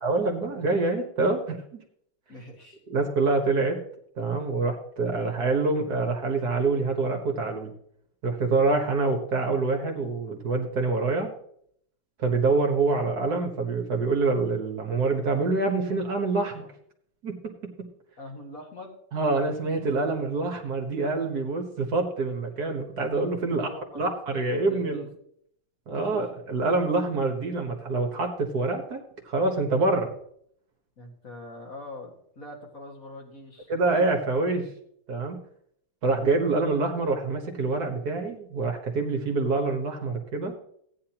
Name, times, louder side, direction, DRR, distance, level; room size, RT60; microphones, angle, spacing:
voice 1, 0.0-1.8 2.9-3.8 4.2-7.7 8.2-11.3 12.2-16.7 17.2-17.9 19.1-23.7 23.9-25.1 25.9-29.0 29.2-30.1 33.7-34.7 35.1-35.4 36.0-40.5, right 3 dB, 55° right, 3 dB, 1.7 m, -26 dB
voice 2, 2.3-2.8 18.2-19.0 23.5-25.1 25.9-26.4 31.0-33.7, left 1 dB, 45° left, 1 dB, 2.2 m, -43 dB
16.5 x 9.7 x 2.9 m, 0.71 s
omnidirectional pair, 2.1 m